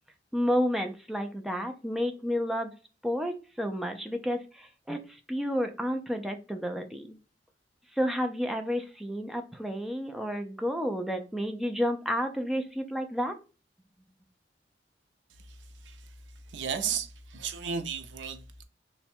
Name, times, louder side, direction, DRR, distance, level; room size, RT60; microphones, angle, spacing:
voice 1, 0.3-2.7 3.0-5.0 5.3-7.2 8.0-13.3, equal, ahead, 0.4 m, -31 dB
voice 2, 15.4-16.1 16.5-18.6, right 7 dB, 75° right, 0.5 m, -35 dB
3.3 x 2.1 x 4.3 m
head